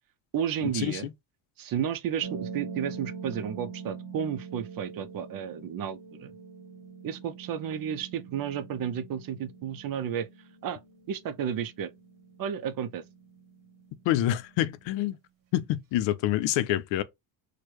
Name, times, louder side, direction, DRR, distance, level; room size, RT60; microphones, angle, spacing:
voice 1, 0.3-1.1 1.6-6.3 7.0-10.3 10.6-10.8 11.1-11.9 12.4-13.0, right 8 dB, 50° right, 0.5 m, -32 dB
sound 1, 2.2-15.0, right 5 dB, 70° right, 1.0 m, -44 dB
voice 2, 14.1-15.2 15.5-17.0, left 13 dB, 70° left, 0.6 m, -26 dB
4.4 x 2.3 x 3.1 m
supercardioid pair, 90°, 47 cm